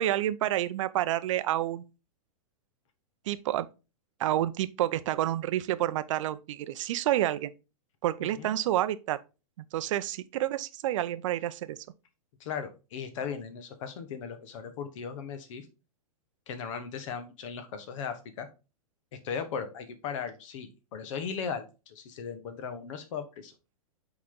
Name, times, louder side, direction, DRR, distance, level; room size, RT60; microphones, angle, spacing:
voice 1, 0.0-1.9 3.3-3.7 4.2-7.5 8.0-9.2 9.7-11.8, right 13 dB, 60° right, 0.6 m, -29 dB
voice 2, 8.2-8.5 12.4-15.6 16.5-18.5 19.2-23.5, left 6 dB, 55° left, 1.3 m, -37 dB
5.9 x 4.1 x 3.8 m
hypercardioid pair, 115°, 19 cm